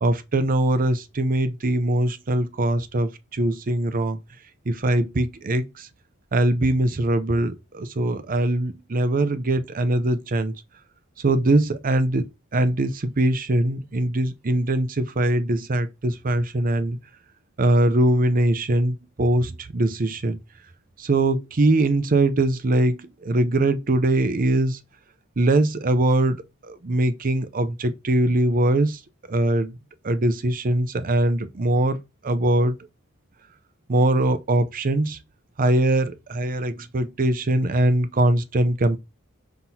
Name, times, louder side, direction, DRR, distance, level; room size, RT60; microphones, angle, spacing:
voice 1, 0.0-4.2 4.7-5.9 6.3-10.5 11.2-17.0 17.6-20.4 21.0-24.8 25.4-29.0 29.3-29.8 30.0-32.8 33.9-35.2 35.6-39.0, right 1 dB, 40° right, 0.6 m, -22 dB
5.9 x 5.7 x 2.8 m
head